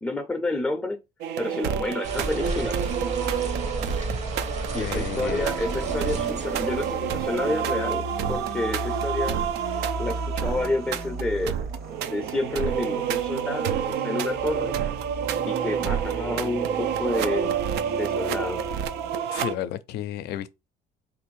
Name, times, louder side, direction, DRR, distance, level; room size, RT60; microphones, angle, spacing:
voice 1, 0.0-1.0 1.4-2.8 4.7-9.4 10.0-11.7 12.0-14.8 15.5-17.5 17.9-18.6, left 2 dB, 10° left, 0.5 m, -29 dB
sound 1, 1.2-19.5, right 8 dB, 80° right, 0.4 m, -29 dB
sound 2, 2.0-7.5, right 2 dB, 45° right, 0.7 m, -33 dB
voice 2, 4.7-5.5 19.3-20.5, left 12 dB, 75° left, 0.4 m, -32 dB
sound 3, 5.6-19.2, right 1 dB, 65° right, 1.1 m, -37 dB
3.4 x 2.5 x 3.1 m
cardioid pair, 110°, 17 cm